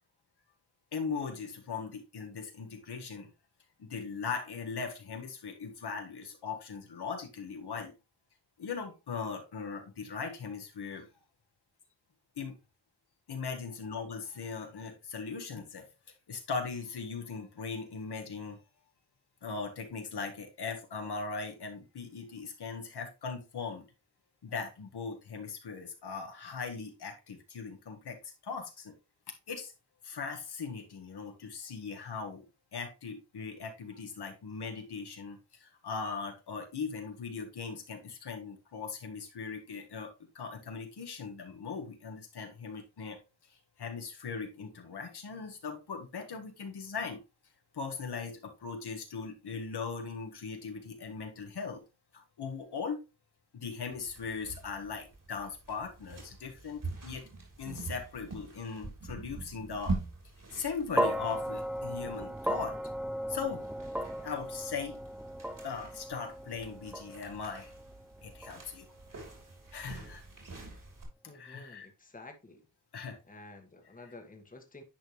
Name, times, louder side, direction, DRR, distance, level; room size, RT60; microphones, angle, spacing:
voice 1, 0.9-3.3 3.8-7.9 8.6-11.1 12.4-12.6 13.3-15.9 16.3-18.6 19.4-23.9 24.4-28.9 29.5-29.7 30.0-32.4 32.7-43.2 43.8-47.2 47.7-51.8 52.1-53.0 53.5-57.2 57.6-60.0 60.5-62.8 63.3-63.6 64.2-65.0 65.6-67.7 68.2-68.9 69.7-70.2 71.2-71.9 72.9-73.2, left 5 dB, 70° left, 1.6 m, -39 dB
sound 1, 53.9-71.1, right 3 dB, 50° right, 3.2 m, -44 dB
sound 2, 61.0-69.3, equal, 5° right, 0.4 m, -36 dB
voice 2, 71.2-72.6 73.2-74.8, left 2 dB, 20° left, 1.4 m, -51 dB
10.0 x 4.5 x 3.1 m
cardioid pair, 75°, 41 cm